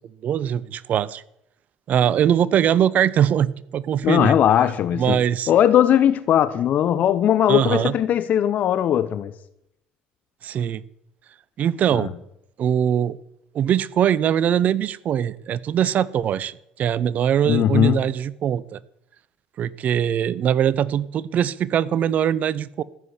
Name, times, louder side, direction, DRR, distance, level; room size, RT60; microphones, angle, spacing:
voice 1, 0.2-1.2 1.9-4.3 5.0-5.5 7.5-7.9 10.4-10.8 11.6-12.1 12.6-13.2 13.5-18.8 19.6-22.8, right 9 dB, 55° right, 0.8 m, -22 dB
voice 2, 4.0-5.2 5.5-9.3 11.9-12.1 17.4-18.0, left 10 dB, 55° left, 0.9 m, -19 dB
14.5 x 7.6 x 9.9 m
hypercardioid pair, 65°, 3 cm